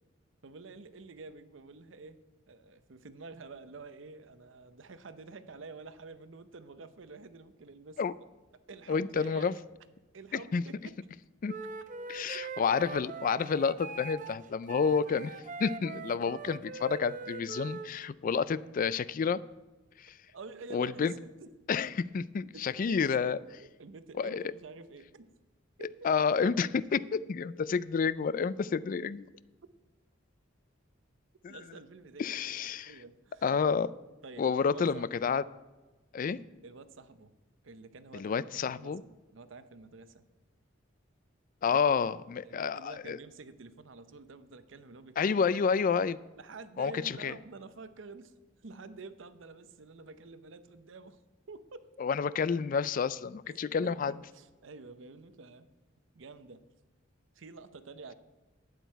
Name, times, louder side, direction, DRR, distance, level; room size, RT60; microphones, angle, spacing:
voice 1, 0.4-2.2 2.5-8.0 8.7-9.7 10.1-11.0 12.2-12.7 20.3-21.5 22.5-25.3 25.8-26.1 31.5-33.7 34.2-35.1 36.6-37.3 37.6-40.3 41.7-41.8 42.4-45.7 46.4-48.3 48.6-51.2 51.5-51.9 53.5-55.7 56.1-56.7 57.3-58.1, right 3 dB, 75° right, 12 dB, 0.7 m, -49 dB
voice 2, 8.9-9.5 10.3-10.6 11.4-11.5 12.1-19.4 20.0-20.1 20.7-21.1 21.7-23.4 24.2-24.4 26.0-29.3 31.4-31.6 32.2-32.9 33.4-33.9 34.4-35.4 36.1-36.4 38.1-39.0 41.6-43.2 45.2-46.2 46.8-47.3 52.0-54.1, left 6 dB, 45° left, 18 dB, 0.3 m, -29 dB
Wind instrument woodwind instrument, 11.4-17.9, right 4 dB, 40° right, 0.7 m, -42 dB
12.0 x 9.3 x 4.5 m, 1.1 s
head